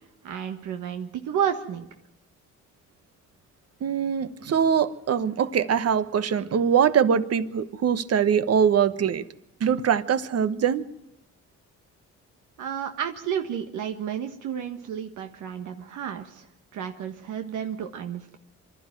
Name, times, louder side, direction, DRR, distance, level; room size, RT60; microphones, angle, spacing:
voice 1, 0.2-1.9 12.6-16.5 16.7-18.4, right 8 dB, 80° right, 5 dB, 1.5 m, -31 dB
voice 2, 3.8-9.2 9.6-10.8, right 7 dB, 55° right, 13 dB, 1.2 m, -23 dB
24.5 x 12.5 x 9.1 m, 0.84 s
cardioid pair, 90°, 30 cm